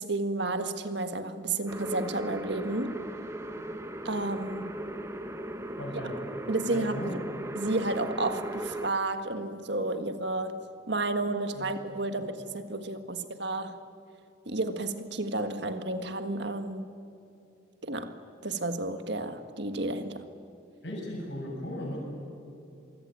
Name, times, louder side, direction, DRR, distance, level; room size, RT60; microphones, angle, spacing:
voice 1, 0.0-3.0 4.0-4.8 6.5-7.2 7.5-13.8 14.4-16.9 17.8-20.3, right 2 dB, 60° right, 1.7 m, -32 dB
sound 1, 1.7-8.9, right 1 dB, 15° right, 1.2 m, -37 dB
voice 2, 5.8-6.2 6.7-7.2 11.5-11.7 12.2-12.3 20.8-22.0, left 1 dB, 60° left, 7.6 m, -37 dB
25.5 x 24.5 x 8.9 m
head